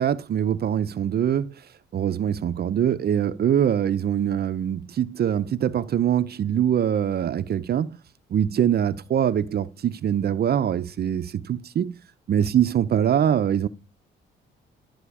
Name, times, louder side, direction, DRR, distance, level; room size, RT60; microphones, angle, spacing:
voice 1, 0.0-1.5 1.9-8.0 8.3-11.9 12.3-13.7, right 9 dB, 50° right, 0.7 m, -23 dB
12.5 x 6.1 x 4.9 m
cardioid pair, 90°, 20 cm